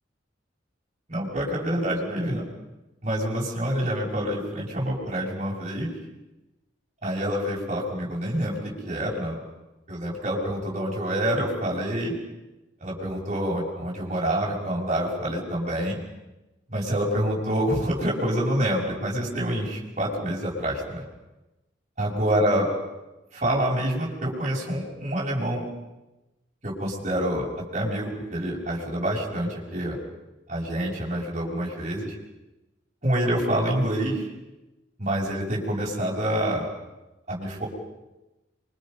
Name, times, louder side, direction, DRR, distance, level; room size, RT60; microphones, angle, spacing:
voice 1, 1.1-2.4 3.0-5.9 7.0-9.4 9.9-12.1 12.8-16.0 16.7-21.0 22.0-22.7 23.4-25.6 26.6-30.0 30.5-32.1 33.0-34.2 35.0-36.7 37.3-37.7, right 1 dB, 40° right, -5 dB, 6.6 m, -27 dB
28.0 x 24.5 x 5.5 m, 1.0 s
head